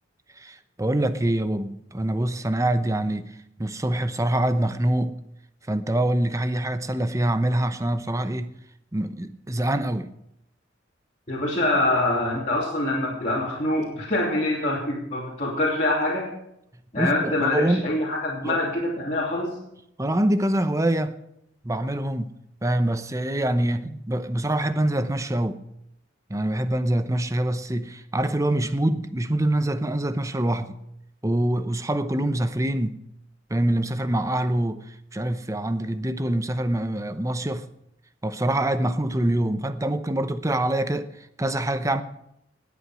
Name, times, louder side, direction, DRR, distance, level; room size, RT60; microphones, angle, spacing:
voice 1, 0.4-3.3 3.6-5.1 5.7-8.5 8.9-10.1 17.0-17.8 18.4-18.6 20.0-21.1 21.6-22.3 22.6-25.6 26.3-30.8 31.2-32.9 33.5-37.7 38.2-42.0, right 1 dB, 15° right, 0.8 m, -25 dB
voice 2, 11.3-16.3 16.9-19.6, left 1 dB, 40° left, 3.1 m, -25 dB
19.5 x 8.6 x 6.2 m
head